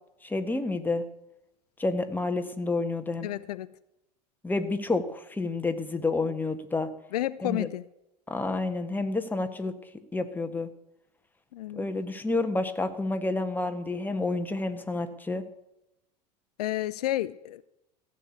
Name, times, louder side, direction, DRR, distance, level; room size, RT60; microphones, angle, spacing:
voice 1, 0.2-1.0 1.8-3.3 4.4-6.9 7.4-7.7 8.3-9.7 10.1-10.7 11.7-15.4, left 3 dB, 10° left, 1.4 m, -29 dB
voice 2, 3.2-3.7 7.1-7.8 11.5-11.9 16.6-17.6, left 14 dB, 65° left, 0.5 m, -31 dB
15.0 x 6.8 x 8.3 m
figure-of-eight pair, 80°, 21 cm